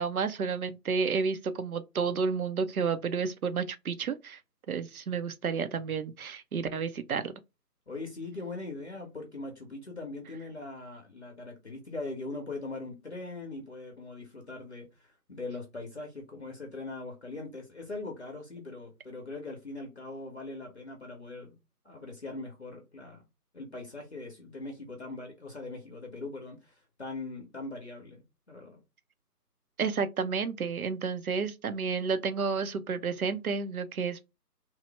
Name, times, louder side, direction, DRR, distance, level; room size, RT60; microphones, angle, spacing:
voice 1, 0.0-4.4 4.7-7.3 29.8-34.2, right 5 dB, 60° right, 0.5 m, -31 dB
voice 2, 7.9-21.6 21.8-23.2 23.5-28.8, left 3 dB, 45° left, 0.7 m, -41 dB
3.1 x 2.0 x 3.2 m
figure-of-eight pair, 155°, 49 cm